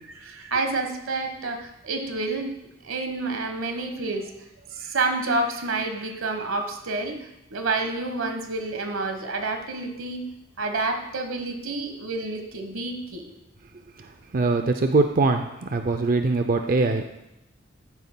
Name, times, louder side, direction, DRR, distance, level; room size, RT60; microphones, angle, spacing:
voice 1, 0.2-2.5 2.8-4.3 4.7-7.2 7.5-10.2 10.6-13.3, right 3 dB, 90° right, 5 dB, 1.3 m, -29 dB
voice 2, 14.3-17.1, right 3 dB, 45° right, 6 dB, 0.5 m, -22 dB
13.5 x 9.2 x 2.2 m, 0.87 s
head